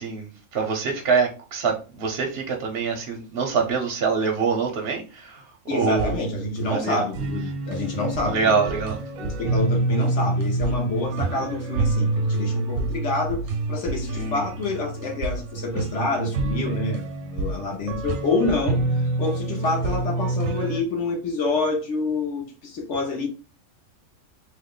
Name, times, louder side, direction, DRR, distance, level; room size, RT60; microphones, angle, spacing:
voice 1, 0.0-5.4 5.7-6.1 6.6-7.0 8.3-9.0 14.1-14.5, right 5 dB, 60° right, 0.7 m, -25 dB
voice 2, 5.7-8.7 9.2-18.8 19.2-23.3, left 2 dB, 60° left, 1.2 m, -27 dB
sound 1, 5.8-20.8, right 2 dB, 85° right, 1.0 m, -27 dB
2.9 x 2.2 x 3.7 m
omnidirectional pair, 1.5 m